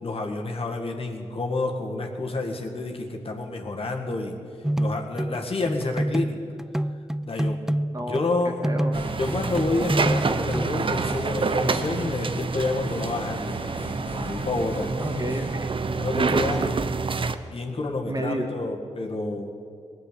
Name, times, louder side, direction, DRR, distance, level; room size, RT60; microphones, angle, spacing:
voice 1, 0.0-4.4 4.8-6.4 7.2-7.6 8.1-8.6 9.2-14.9 15.9-16.8 17.5-19.6, left 2 dB, 50° left, 1 dB, 2.0 m, -29 dB
sound 1, 4.6-10.9, right 1 dB, 5° right, 0.4 m, -28 dB
voice 2, 8.4-8.9 15.0-15.7 16.3-16.7 18.1-18.5, right 1 dB, 30° right, 3 dB, 2.1 m, -31 dB
sound 2, 8.9-15.6, left 1 dB, 15° left, 1.4 m, -39 dB
sound 3, 8.9-17.3, right 4 dB, 45° right, 0.7 m, -27 dB
18.5 x 7.9 x 8.7 m, 2.3 s
supercardioid pair, 40°, 12 cm